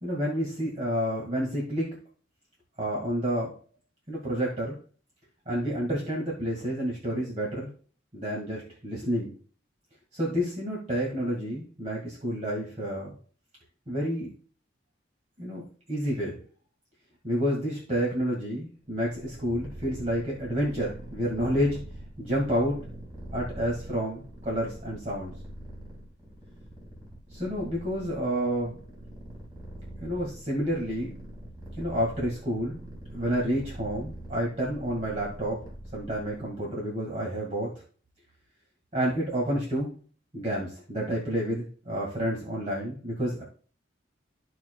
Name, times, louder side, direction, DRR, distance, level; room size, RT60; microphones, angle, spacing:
voice 1, 0.0-1.9 2.8-3.5 4.1-4.7 5.4-7.7 8.1-9.3 10.1-13.1 13.9-14.3 15.4-15.6 15.9-16.4 17.2-21.8 22.2-22.8 23.3-25.4 27.3-28.8 30.0-31.1 31.7-32.8 33.1-35.6 35.9-37.7 38.9-39.9 40.3-43.4, equal, 35° right, -3 dB, 1.7 m, -29 dB
Purr, 18.8-36.6, right 1 dB, 20° right, 1.9 m, -44 dB
14.0 x 4.8 x 2.2 m, 0.42 s
head